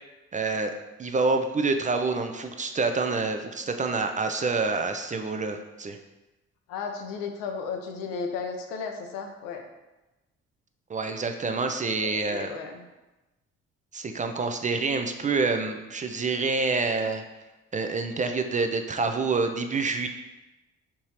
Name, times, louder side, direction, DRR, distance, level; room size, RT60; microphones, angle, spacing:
voice 1, 0.3-0.7 1.0-6.0 10.9-12.5 13.9-17.2 17.7-20.1, right 4 dB, 25° right, 6 dB, 0.4 m, -27 dB
voice 2, 6.7-9.6 12.0-12.8, left 5 dB, 85° left, 4 dB, 0.6 m, -34 dB
4.6 x 2.8 x 2.9 m, 1.0 s
supercardioid pair, 55°, 32 cm